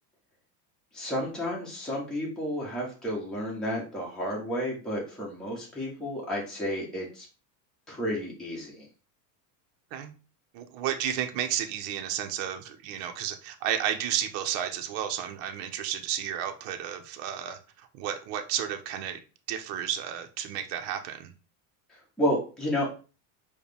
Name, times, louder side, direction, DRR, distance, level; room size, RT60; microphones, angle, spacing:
voice 1, 0.9-7.3 7.9-8.9 21.9-22.9, equal, ahead, 1.1 m, -31 dB
voice 2, 10.5-19.2 19.5-21.3, right 10 dB, 60° right, 0.7 m, -32 dB
4.7 x 2.2 x 3.3 m
supercardioid pair, 115°, 47 cm